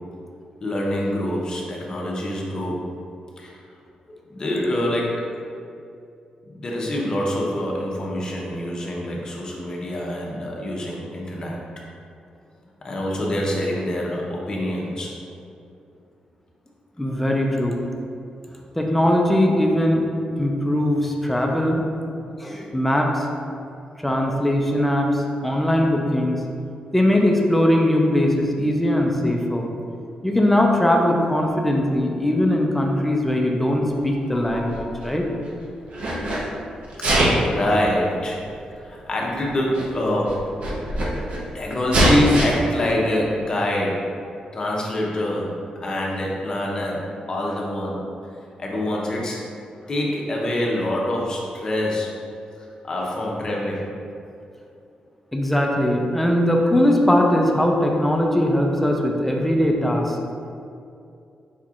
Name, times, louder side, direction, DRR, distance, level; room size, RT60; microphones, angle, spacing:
voice 1, 0.6-2.8 3.4-3.5 4.3-5.2 6.5-11.6 12.8-15.1 34.3-35.0 37.0-37.1 37.5-38.4 38.8-40.4 41.5-44.0 44.5-45.5 45.8-48.0 48.6-49.5 49.9-52.1 52.8-53.9, left 1 dB, 30° left, -3 dB, 0.7 m, -25 dB
voice 2, 17.0-17.7 18.8-20.0 20.4-21.8 22.4-23.3 24.0-26.4 26.9-29.7 30.2-35.3 55.3-60.2, left 1 dB, 5° left, 0 dB, 0.4 m, -20 dB
Sneeze, 34.4-35.5 35.9-36.4 36.9-37.5 38.5-38.6 39.5-39.6 39.7-39.8 40.2-41.4 41.9-42.5, right 1 dB, 55° right, 0.7 m, -21 dB
5.0 x 4.3 x 2.4 m, 2.6 s
wide cardioid pair, 160°, 2 cm